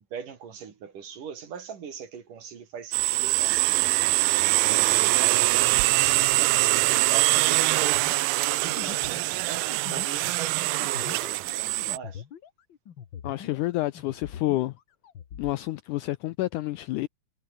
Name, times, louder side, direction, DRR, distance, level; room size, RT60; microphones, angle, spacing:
voice 1, 0.1-3.6 4.9-5.6 5.9-8.1 8.3-12.2, right 7 dB, 60° right, 4.4 m, -41 dB
sound 1, 2.9-12.0, right 22 dB, 80° right, 2.2 m, -23 dB
sound 2, 7.9-13.7 13.9-15.6, left 8 dB, 60° left, 1.3 m, -43 dB
voice 2, 13.2-14.8 15.4-17.1, left 17 dB, 90° left, 1.8 m, -29 dB
omnidirectional pair, 4.3 m